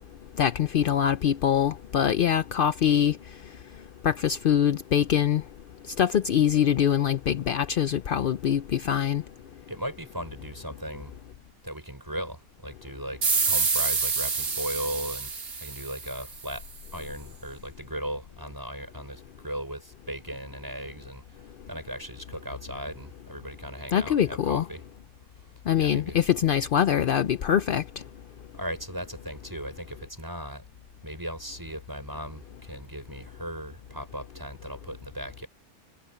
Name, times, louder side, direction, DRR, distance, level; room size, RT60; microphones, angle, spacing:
voice 1, 0.4-3.2 4.0-5.4 6.0-9.2 23.9-24.6 25.7-27.8, left 9 dB, 70° left, 0.5 m, -23 dB
voice 2, 9.7-11.2 11.6-16.7 16.9-24.8 25.8-26.2 28.5-30.6 31.0-35.5, equal, 15° right, 6.3 m, -37 dB
sound 1, 13.2-16.5, right 5 dB, 70° right, 2.4 m, -27 dB
omnidirectional pair, 1.6 m